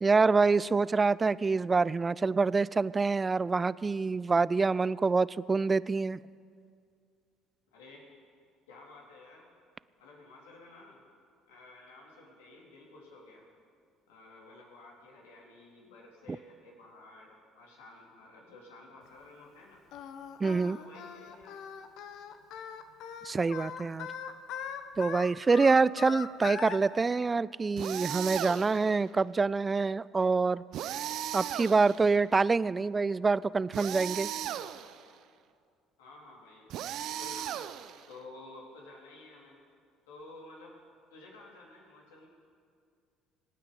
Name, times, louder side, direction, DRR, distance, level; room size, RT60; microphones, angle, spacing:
voice 1, 0.0-6.2 20.4-20.8 23.2-24.1 25.0-30.6 31.3-34.3, right 4 dB, 25° right, 20 dB, 0.4 m, -26 dB
voice 2, 7.7-8.1 8.7-9.5 10.0-11.0 11.5-13.4 14.1-19.8 20.4-21.6 36.0-36.7 37.0-37.5 38.1-39.6 40.1-40.8 41.1-42.3, left 2 dB, 80° left, -2 dB, 3.4 m, -52 dB
Singing, 19.9-26.8, left 8 dB, 60° left, 1.0 m, -41 dB
sound 1, 27.8-28.9 30.7-32.2 33.7-35.0 36.7-38.1, right 11 dB, 60° right, 0.6 m, -37 dB
26.0 x 9.4 x 5.4 m, 2.3 s
hypercardioid pair, 60°, 0 cm